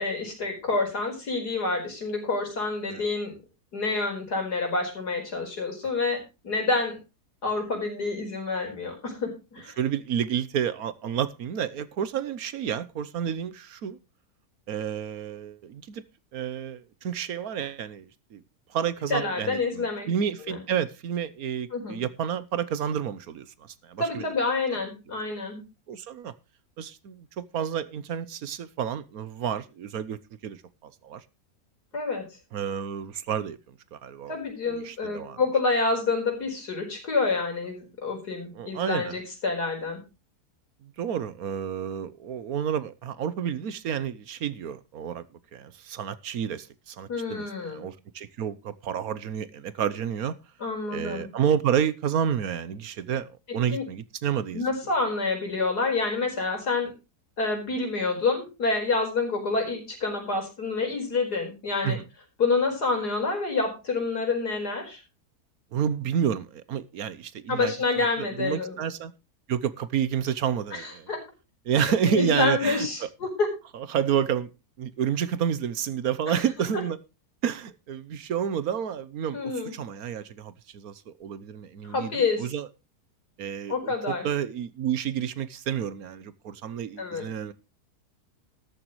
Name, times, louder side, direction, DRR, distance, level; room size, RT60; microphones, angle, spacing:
voice 1, 0.0-3.4 3.7-7.0 7.4-9.8 19.1-20.1 20.5-20.6 21.7-22.0 24.0-25.6 31.9-32.2 34.3-40.0 47.1-47.9 50.6-51.3 53.5-53.8 54.5-56.9 57.4-62.0 62.4-65.0 67.5-68.7 70.7-71.2 71.8-73.5 76.3-76.4 79.3-79.7 81.8-82.5 83.7-84.3 87.0-87.3, left 3 dB, 85° left, 5.3 m, -28 dB
voice 2, 9.8-14.0 14.7-16.0 16.3-18.4 18.7-23.5 23.8-24.2 25.9-26.3 26.8-31.2 32.5-34.4 34.7-35.4 38.5-39.2 40.8-45.2 45.5-50.4 50.9-54.6 61.8-62.0 65.7-67.7 68.2-69.1 69.5-71.1 71.6-73.1 73.7-74.5 74.8-77.0 77.4-82.7 83.4-87.5, right 8 dB, 70° right, 1.3 m, -30 dB
13.5 x 13.0 x 3.1 m
omnidirectional pair, 1.7 m